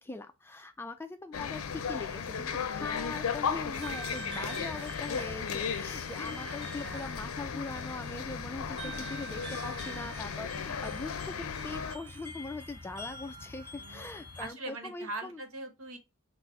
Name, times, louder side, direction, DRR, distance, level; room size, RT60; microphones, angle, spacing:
voice 1, 0.0-11.3 11.6-15.4, left 3 dB, 10° left, 0.3 m, -41 dB
sound 1, 1.3-12.0, left 6 dB, 85° left, 0.5 m, -36 dB
sound 2, 3.7-14.5, right 1 dB, 25° right, 1.6 m, -46 dB
voice 2, 4.3-4.9 5.2-5.3 6.4-6.6 6.8-7.1 8.7-9.3 13.7-14.1 14.4-16.0, right 2 dB, 70° right, 0.9 m, -43 dB
4.3 x 2.0 x 4.1 m
head